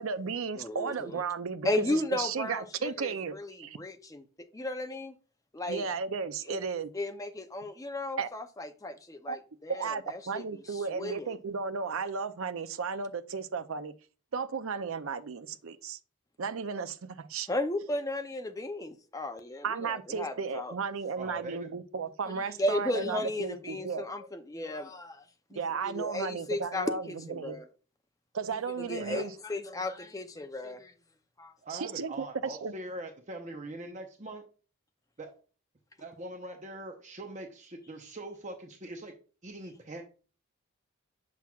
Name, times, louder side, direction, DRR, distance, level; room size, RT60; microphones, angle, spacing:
voice 1, 0.0-3.8 5.7-6.9 8.2-8.3 9.3-9.4 9.7-13.9 14.3-16.0 16.4-17.5 19.6-24.0 25.5-27.0 27.3-27.6 28.3-29.3 31.7-32.3 32.6-32.7, right 5 dB, 70° right, 0.5 m, -34 dB
voice 2, 0.5-1.2 1.6-4.2 4.5-5.2 5.5-5.9 6.5-6.6 6.9-11.3 17.5-20.7 22.3-25.3 25.5-27.7 28.5-30.9 31.4-31.5, left 1 dB, 15° left, 0.5 m, -35 dB
voice 3, 21.2-21.7 23.8-24.3 29.0-29.2 31.6-34.4 35.2-35.3 36.0-39.1 39.4-40.0, right 1 dB, 35° right, 0.7 m, -42 dB
7.0 x 6.0 x 2.3 m
head